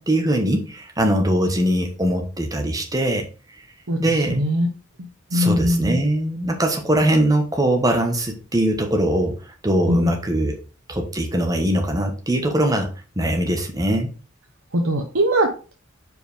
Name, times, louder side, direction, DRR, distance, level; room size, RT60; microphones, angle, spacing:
voice 1, 0.0-3.3 4.0-4.4 5.3-9.4 9.6-10.5 10.9-12.9 13.2-14.1, right 1 dB, 15° right, 3 dB, 1.2 m, -21 dB
voice 2, 4.3-4.7 5.3-6.0 9.9-10.1 14.7-15.7, equal, 75° right, 2 dB, 1.0 m, -20 dB
5.0 x 4.8 x 5.0 m, 0.36 s
head